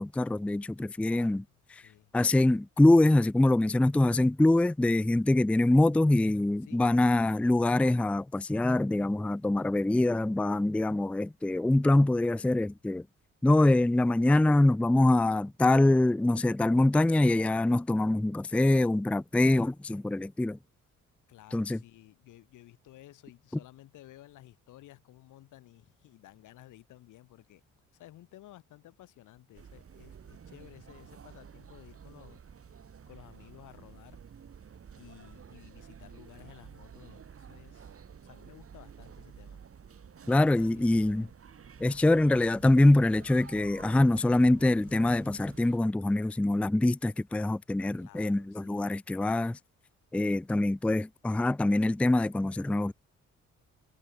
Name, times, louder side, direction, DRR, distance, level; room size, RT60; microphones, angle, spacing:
voice 1, 0.0-1.4 2.1-13.1 13.4-20.6 21.5-21.8 40.3-41.3 41.8-49.6 50.1-52.9, left 2 dB, 5° left, 0.4 m, -24 dB
voice 2, 1.1-1.4 1.8-2.1 6.6-6.9 21.3-27.6 27.9-32.4 33.1-34.2 35.0-37.9 38.2-39.6 40.2-41.3 47.9-48.9, left 15 dB, 85° left, 3.0 m, -54 dB
sound 1, 29.5-45.8, right 7 dB, 50° right, 7.0 m, -51 dB
cardioid pair, 90°, 30 cm